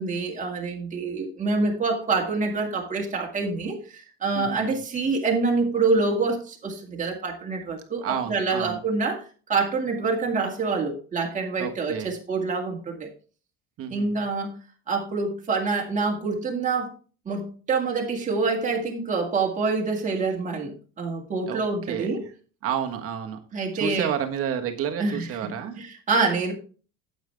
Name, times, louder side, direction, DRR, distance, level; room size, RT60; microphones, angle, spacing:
voice 1, 0.0-13.1 13.9-14.6 14.9-16.9 17.3-22.2 23.5-24.1 25.0-26.5, right 4 dB, 20° right, 0 dB, 2.0 m, -26 dB
voice 2, 4.3-4.8 8.0-8.8 11.6-12.1 13.8-14.3 21.5-21.6 21.9-22.1 22.6-23.4 23.7-25.8, right 8 dB, 40° right, 5 dB, 1.4 m, -30 dB
9.0 x 8.1 x 3.4 m, 0.39 s
cardioid pair, 145°, 34 cm